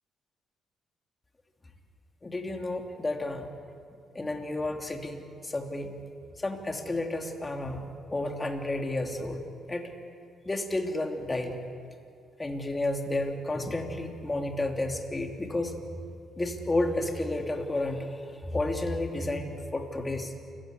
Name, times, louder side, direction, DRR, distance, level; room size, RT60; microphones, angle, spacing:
voice 1, 2.2-3.5 4.1-5.9 6.4-9.4 9.7-9.9 10.4-11.6 12.4-15.7 16.4-18.2 18.5-20.3, left 2 dB, 20° left, 3 dB, 3.1 m, -31 dB
28.0 x 16.0 x 9.8 m, 2.3 s
cardioid pair, 90°, 0 cm